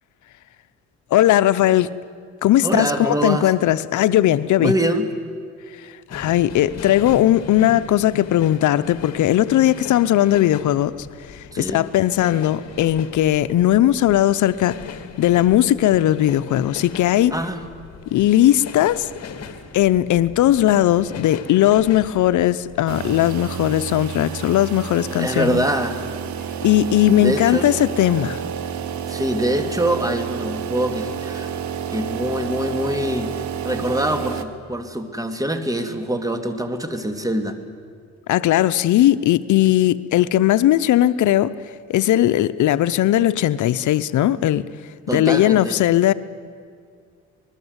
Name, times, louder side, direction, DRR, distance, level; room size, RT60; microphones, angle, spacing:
voice 1, 1.1-1.9 2.4-4.7 5.8-10.9 11.3-14.8 15.2-17.3 18.1-19.1 19.7-25.6 26.6-28.4 38.3-41.5 41.9-44.6 45.1-46.1, left 13 dB, 75° left, 14 dB, 0.7 m, -18 dB
voice 2, 2.6-3.5 4.6-5.1 11.5-11.8 17.3-17.6 25.1-26.0 27.2-27.7 29.1-31.5 31.9-33.3 33.6-37.6 45.1-45.8, right 1 dB, 10° right, 7 dB, 2.5 m, -24 dB
sound 1, 6.1-23.2, left 5 dB, 55° left, 2.2 m, -38 dB
sound 2, 22.9-34.4, right 8 dB, 70° right, 1.5 m, -30 dB
26.0 x 20.5 x 8.1 m, 2.2 s
cardioid pair, 90°, 30 cm